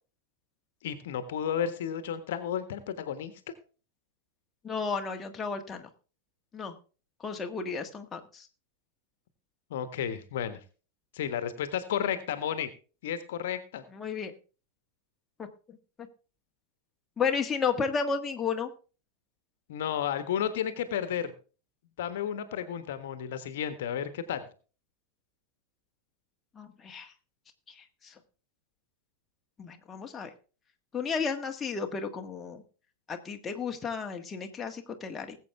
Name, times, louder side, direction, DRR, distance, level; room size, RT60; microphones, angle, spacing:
voice 1, 0.8-3.3 9.7-10.6 11.1-12.7 13.0-13.8 19.7-21.3 22.0-24.5, left 9 dB, 55° left, 11 dB, 1.4 m, -32 dB
voice 2, 4.6-5.9 6.5-6.7 7.2-8.5 13.9-14.3 15.7-15.8 17.2-18.7 26.5-27.1 27.7-28.1 29.6-30.3 30.9-32.6 33.1-35.4, left 5 dB, 20° left, 3 dB, 1.5 m, -33 dB
20.0 x 8.0 x 3.4 m, 0.37 s
figure-of-eight pair, 90°, 0 cm